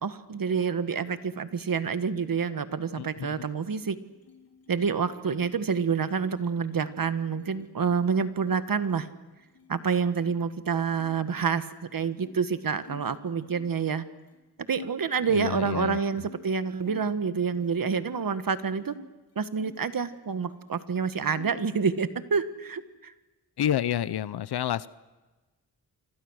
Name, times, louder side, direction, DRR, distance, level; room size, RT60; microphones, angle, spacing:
voice 1, 0.0-4.0 4.7-9.1 9.7-11.6 11.9-14.0 14.7-18.9 19.3-23.1, right 6 dB, 60° right, 11 dB, 1.6 m, -28 dB
voice 2, 3.0-3.4 15.3-16.0 23.6-24.9, left 10 dB, 85° left, 17 dB, 0.7 m, -29 dB
sound 1, 3.3-9.0 9.3-10.3 10.9-13.8 14.3-14.4 14.7-17.1 17.5-19.1 19.5-20.6 20.9-21.8, left 6 dB, 65° left, 4.1 m, -52 dB
29.5 x 25.5 x 6.4 m, 1.2 s
cardioid pair, 80°, 38 cm